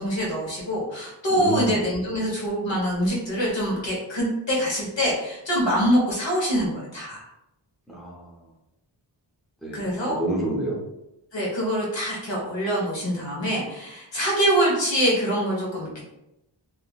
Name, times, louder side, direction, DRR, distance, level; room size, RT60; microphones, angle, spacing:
voice 1, 0.0-7.2 9.7-10.2 11.3-16.0, equal, 70° left, -4 dB, 1.1 m, -24 dB
voice 2, 1.3-1.8 7.9-8.3 9.6-10.8, right 1 dB, ahead, -4 dB, 0.7 m, -28 dB
2.9 x 2.5 x 2.3 m, 0.88 s
wide cardioid pair, 70°, 46 cm